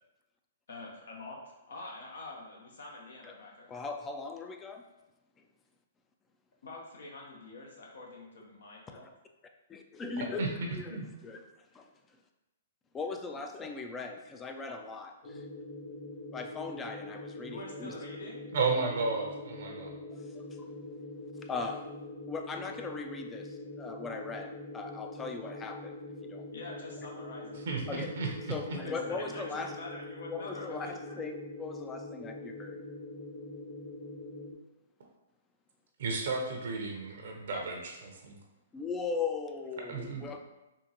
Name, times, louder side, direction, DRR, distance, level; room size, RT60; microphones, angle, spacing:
voice 1, 0.7-3.8 6.6-9.0 17.4-18.5 26.5-27.6 29.1-31.2, left 2 dB, 70° left, -1 dB, 0.7 m, -46 dB
voice 2, 3.7-4.9 9.9-11.4 11.7-11.9 12.9-15.5 16.3-18.0 20.1-20.7 21.4-21.9 22.3-26.0 26.2-26.5 27.9-28.1 28.5-29.8 30.3-32.8 38.7-40.4, left 4 dB, 15° left, 5 dB, 0.3 m, -39 dB
voice 3, 10.2-10.5 10.9-11.0 18.5-19.9 27.7-28.8 36.0-38.4 39.9-40.3, right 4 dB, 65° right, 1 dB, 0.6 m, -33 dB
sound 1, 15.2-34.5, left 2 dB, 50° left, 1.1 m, -44 dB
3.7 x 2.5 x 2.8 m, 1.0 s
hypercardioid pair, 130°, 0 cm